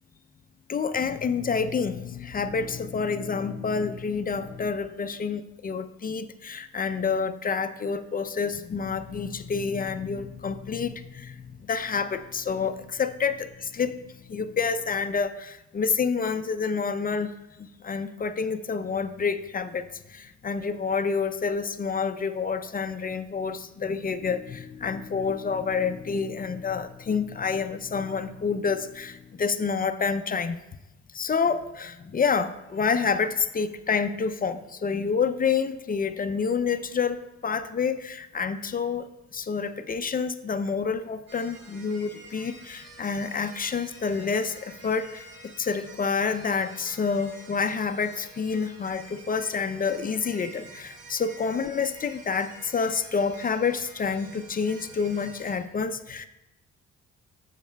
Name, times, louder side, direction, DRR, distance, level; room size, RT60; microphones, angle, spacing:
voice 1, 0.7-13.9 14.3-17.3 17.6-30.6 31.1-37.2 37.4-39.1 39.3-45.3 45.6-56.3, left 5 dB, 30° left, 10 dB, 0.4 m, -28 dB
sound 1, 41.3-55.6, right 2 dB, 55° right, 1.4 m, -48 dB
12.5 x 6.5 x 2.2 m, 0.94 s
cardioid pair, 90°, 30 cm